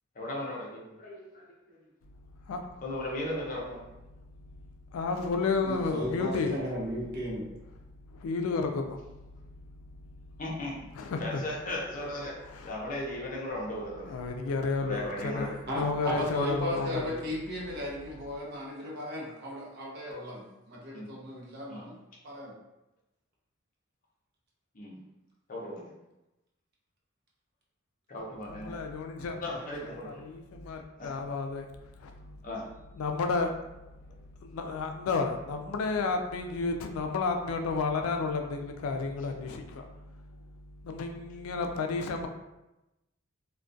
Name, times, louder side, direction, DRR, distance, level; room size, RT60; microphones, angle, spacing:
voice 1, 0.2-1.8 2.8-3.9 10.4-10.7 11.2-12.3 12.6-14.2 14.8-15.5 16.0-16.1 16.8-16.9 20.9-21.1 21.7-21.9 24.7-25.0 25.5-25.9 28.1-28.8 29.4-30.2 31.0-31.1 32.4-32.6, left 1 dB, 40° left, -3 dB, 0.6 m, -37 dB
voice 2, 4.9-6.5 8.1-9.0 11.0-11.4 12.5-12.7 14.1-17.1 28.5-29.4 30.0-31.7 32.0-32.3 33.0-33.5 34.4-39.8 40.8-42.3, left 4 dB, 85° left, 4 dB, 0.3 m, -31 dB
voice 3, 5.6-7.4 15.7-21.9 22.2-22.5 29.5-29.9, equal, 50° right, -4 dB, 0.6 m, -36 dB
2.3 x 2.2 x 2.5 m, 0.96 s
head